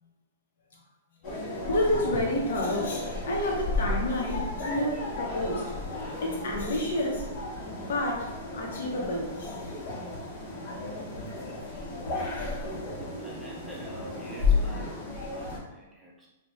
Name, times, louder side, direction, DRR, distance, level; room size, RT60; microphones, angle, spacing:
sound 1, 1.2-15.6, left 3 dB, 35° left, 0.8 m, -33 dB
voice 1, 1.7-5.7 6.2-7.3 7.8-9.7 12.3-12.6, left 1 dB, 70° left, -1 dB, 0.8 m, -30 dB
voice 2, 13.2-16.3, right 1 dB, 5° right, -5 dB, 0.4 m, -47 dB
2.8 x 2.1 x 3.1 m, 1.1 s
hypercardioid pair, 170°, 0 cm